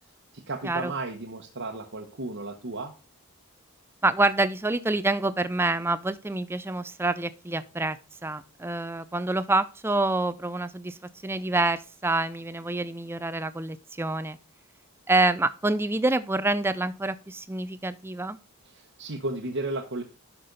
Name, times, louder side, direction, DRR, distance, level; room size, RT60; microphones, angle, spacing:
voice 1, 0.3-2.9 18.6-20.0, right 2 dB, 55° right, 1 dB, 1.0 m, -34 dB
voice 2, 4.0-8.0 8.2-11.0 11.2-14.4 15.1-18.4, right 2 dB, 10° right, 14 dB, 0.4 m, -27 dB
11.5 x 5.9 x 3.9 m, 0.34 s
head